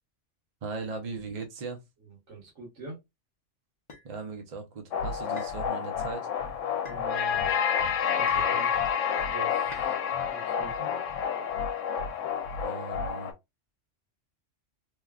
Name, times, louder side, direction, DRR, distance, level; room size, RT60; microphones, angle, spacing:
voice 1, 0.6-1.8 4.0-6.3 12.2-13.3, right 4 dB, 40° right, 0.7 m, -38 dB
voice 2, 2.0-3.0 6.9-7.6 8.0-8.7 9.2-10.9, right 3 dB, 75° right, 1.5 m, -44 dB
sound 1, 3.9-4.1 5.4-5.6 6.8-7.1 8.3-8.6 9.7-9.9, left 3 dB, 30° left, 0.6 m, -45 dB
sound 2, 4.9-13.3, left 7 dB, 85° left, 1.0 m, -29 dB
3.1 x 2.3 x 2.3 m
omnidirectional pair, 1.3 m